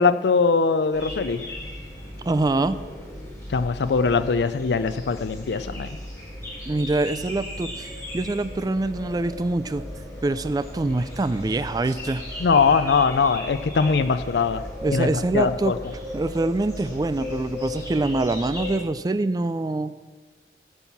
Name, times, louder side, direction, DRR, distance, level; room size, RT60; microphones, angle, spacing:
voice 1, 0.0-1.4 3.5-5.9 12.4-14.6 14.9-15.1 15.3-15.8, left 5 dB, 65° left, 11 dB, 0.4 m, -21 dB
sound 1, 0.9-18.8, left 1 dB, 15° left, 4.3 m, -36 dB
voice 2, 2.3-2.8 6.7-9.8 10.2-12.2 14.8-15.7 16.1-19.9, right 2 dB, 20° right, 13 dB, 0.3 m, -25 dB
15.0 x 5.5 x 7.1 m, 1.4 s
head